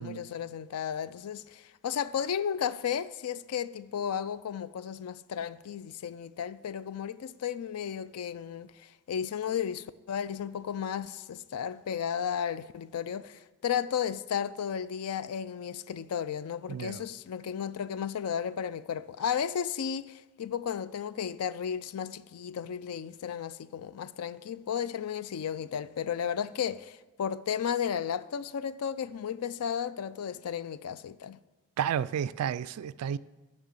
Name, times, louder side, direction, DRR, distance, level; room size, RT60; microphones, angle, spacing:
voice 1, 0.0-31.4, left 8 dB, 80° left, 0.4 m, -34 dB
voice 2, 16.7-17.0 31.8-33.2, right 8 dB, 85° right, 0.3 m, -31 dB
7.5 x 5.6 x 7.2 m
head